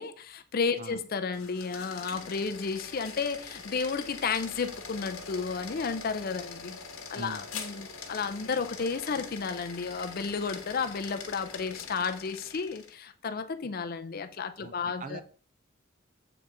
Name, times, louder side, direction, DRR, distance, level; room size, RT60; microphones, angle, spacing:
voice 1, 0.0-6.8 7.1-15.2, left 5 dB, 45° left, 0.5 m, -32 dB
sound 1, 1.2-13.0, left 5 dB, 80° left, 1.2 m, -43 dB
voice 2, 7.1-7.5 14.6-15.2, right 3 dB, 35° right, 0.5 m, -42 dB
7.0 x 3.9 x 4.7 m
head